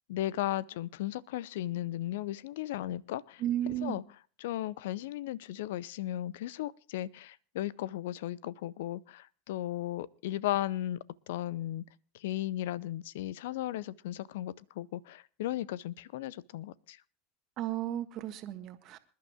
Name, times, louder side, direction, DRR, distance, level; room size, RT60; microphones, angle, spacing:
voice 1, 0.1-3.4 3.8-4.0 4.4-11.0 11.3-11.8 12.1-17.0, left 14 dB, 65° left, 0.5 m, -36 dB
voice 2, 3.4-4.0 17.6-19.0, right 12 dB, 45° right, 1.5 m, -34 dB
26.5 x 11.5 x 2.2 m
figure-of-eight pair, 80°, 0 cm